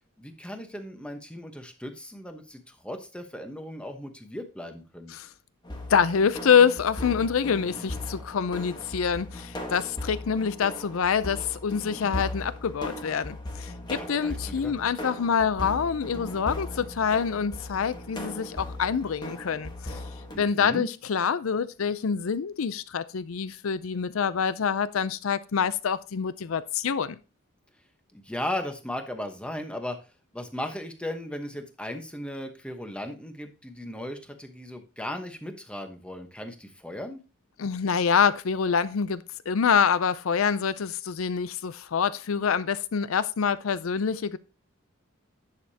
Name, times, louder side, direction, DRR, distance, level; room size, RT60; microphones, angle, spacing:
voice 1, 0.2-5.1 13.9-14.7 20.3-20.9 28.1-30.0 30.3-37.2, left 1 dB, 5° left, 1.0 m, -37 dB
sound 1, 5.6-20.4, left 1 dB, 20° left, 1.3 m, -38 dB
voice 2, 5.9-20.0 20.4-27.2 37.6-44.4, left 6 dB, 80° left, 0.5 m, -26 dB
10.5 x 6.6 x 2.8 m
head